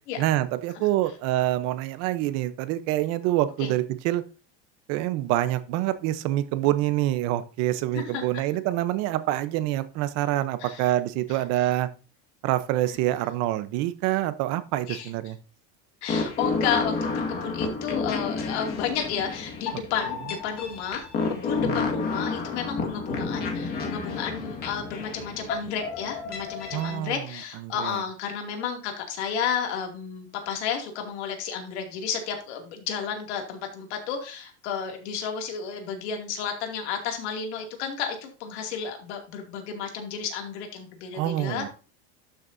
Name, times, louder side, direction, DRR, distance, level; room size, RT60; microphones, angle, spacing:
voice 1, 0.2-4.2 4.9-11.9 12.4-15.4 21.6-21.8 26.7-27.2 27.6-28.0 41.1-41.7, right 14 dB, 50° right, 13 dB, 0.8 m, -26 dB
voice 2, 7.9-8.2 10.6-10.9 11.3-11.4 14.9-15.1 16.0-41.7, left 7 dB, 85° left, 3 dB, 2.5 m, -32 dB
sound 1, 16.1-27.0, left 4 dB, 30° left, 1.8 m, -30 dB
12.0 x 6.4 x 2.7 m, 0.34 s
cardioid pair, 160°, 33 cm